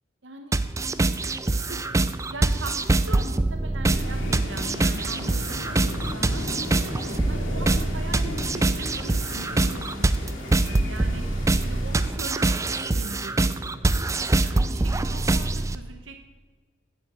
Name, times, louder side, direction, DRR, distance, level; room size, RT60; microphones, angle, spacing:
voice 1, 0.2-0.6 1.5-1.8 2.3-6.9 7.3-11.2 11.6-14.1 14.4-16.3, right 3 dB, 60° right, 6 dB, 0.9 m, -41 dB
sound 1, 0.5-15.8, right 2 dB, 15° right, 0.4 m, -24 dB
sound 2, 3.9-12.1, left 1 dB, 70° left, 2.5 m, -35 dB
9.4 x 9.2 x 8.0 m, 1.4 s
head